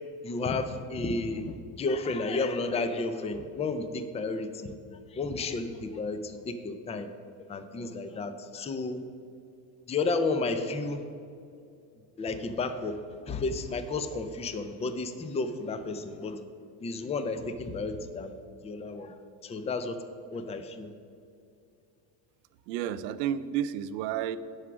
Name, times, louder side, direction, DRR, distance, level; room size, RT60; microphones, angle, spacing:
voice 1, 0.2-4.7 5.1-7.1 7.3-9.0 9.9-11.0 12.2-13.0 13.3-16.4 16.8-18.3 18.6-20.0 20.3-20.9, left 3 dB, 15° left, 9 dB, 0.5 m, -32 dB
voice 2, 22.7-24.4, right 10 dB, 90° right, 14 dB, 0.6 m, -31 dB
10.5 x 4.9 x 6.1 m, 2.5 s
supercardioid pair, 110°, 49 cm